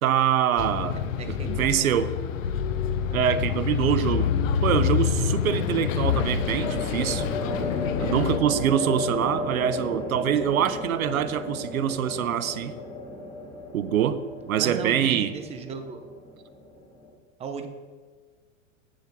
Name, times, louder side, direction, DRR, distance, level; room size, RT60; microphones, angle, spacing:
voice 1, 0.0-1.0 1.3-2.1 3.1-4.3 4.6-7.3 8.0-12.7 13.7-15.3, right 9 dB, 85° right, 0.7 m, -25 dB
Bus, 0.6-8.4, left 8 dB, 70° left, 0.8 m, -27 dB
voice 2, 1.2-1.9 4.6-4.8 14.6-16.0 17.4-17.7, right 5 dB, 15° right, 0.7 m, -36 dB
sound 1, 2.6-3.2 5.7-17.1, left 1 dB, 15° left, 2.3 m, -34 dB
Bowed string instrument, 4.9-10.3, left 4 dB, 45° right, 1.5 m, -49 dB
8.4 x 7.8 x 4.0 m
hypercardioid pair, 120°, 41 cm